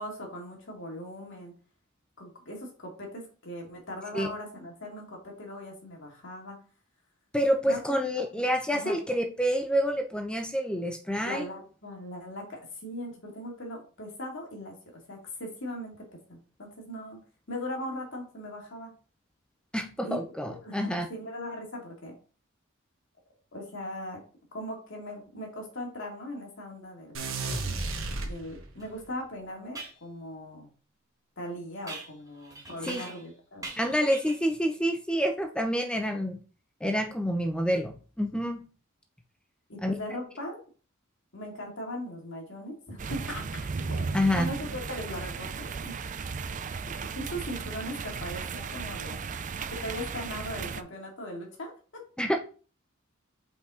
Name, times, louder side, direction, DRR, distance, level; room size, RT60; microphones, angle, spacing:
voice 1, 0.0-1.5 2.2-6.6 7.6-7.8 8.3-8.4 8.7-9.0 11.2-17.2 17.5-18.9 20.0-22.2 23.5-24.2 24.5-27.2 28.2-30.7 31.4-33.7 39.7-40.6 41.3-43.5 43.9-46.0 46.8-49.2 49.7-52.0, left 1 dB, 65° left, 0 dB, 2.6 m, -39 dB
voice 2, 7.3-11.5 19.7-21.1 32.8-33.0 33.8-36.4 36.8-38.6 39.8-39.9 44.1-44.5 52.2-52.3, equal, 5° left, 4 dB, 0.6 m, -28 dB
sound 1, 27.1-28.9, right 3 dB, 75° right, 1.4 m, -33 dB
sound 2, 28.8-28.9 29.7-30.0 31.9-33.3 33.6-34.5, right 3 dB, 15° right, 1.5 m, -43 dB
sound 3, 43.0-50.8, right 5 dB, 40° right, 0.4 m, -35 dB
5.7 x 5.5 x 3.8 m, 0.38 s
head